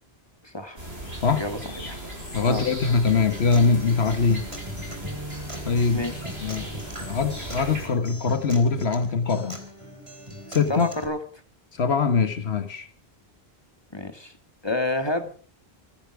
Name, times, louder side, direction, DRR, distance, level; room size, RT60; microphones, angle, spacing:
voice 1, 0.4-0.8 1.3-2.0 2.5-2.6 5.9-6.2 10.7-11.2 13.9-14.3 14.6-15.3, left 1 dB, 25° left, 1.9 m, -29 dB
sound 1, 0.8-7.9, right 1 dB, 80° right, 6.9 m, -37 dB
voice 2, 2.3-4.5 5.7-6.1 6.4-6.7 7.1-9.6 10.5-10.9 11.7-12.9, left 5 dB, 90° left, 1.6 m, -22 dB
Acoustic guitar, 3.1-11.0, equal, 30° right, 3.3 m, -39 dB
25.5 x 10.5 x 4.9 m
omnidirectional pair, 1.1 m